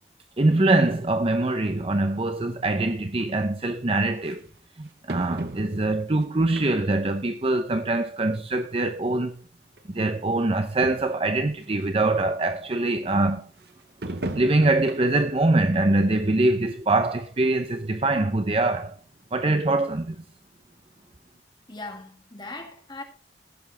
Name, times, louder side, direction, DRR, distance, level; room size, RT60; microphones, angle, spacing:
voice 1, 0.4-4.4 4.8-9.4 9.9-13.5 14.3-19.0 19.3-20.2, right 2 dB, 35° right, 0.7 m, -23 dB
Metallic bangs & footsteps in large shed, 3.2-3.3 4.2-4.3 5.1-6.0 6.6-7.1 7.5-7.6 8.5-8.6 8.8-8.9 9.8-9.9 10.2-10.3 10.5-10.6 10.8-11.3 11.8-11.9 14.0-15.3 15.7-15.9 16.4-16.5, right 1 dB, 65° right, 1.1 m, -36 dB
voice 2, 21.7-23.0, left 2 dB, 25° left, 2.1 m, -39 dB
15.5 x 8.0 x 4.1 m
head